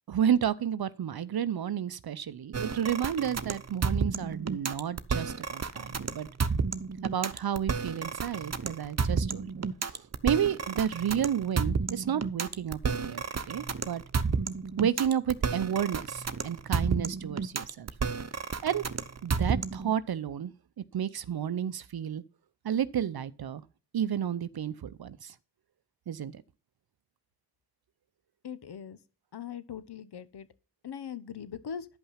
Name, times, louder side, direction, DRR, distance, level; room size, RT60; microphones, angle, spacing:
voice 1, 0.1-6.3 7.0-14.0 14.8-17.9 18.6-18.8 19.2-20.5 20.9-22.2 22.6-23.6 23.9-25.3 26.1-26.4, right 9 dB, 65° right, 0.7 m, -31 dB
sound 1, 2.5-19.9, right 5 dB, 40° right, 0.9 m, -31 dB
voice 2, 28.4-29.0 29.3-30.5 30.8-31.9, left 8 dB, 70° left, 1.1 m, -40 dB
11.0 x 5.7 x 5.7 m
cardioid pair, 50°, 41 cm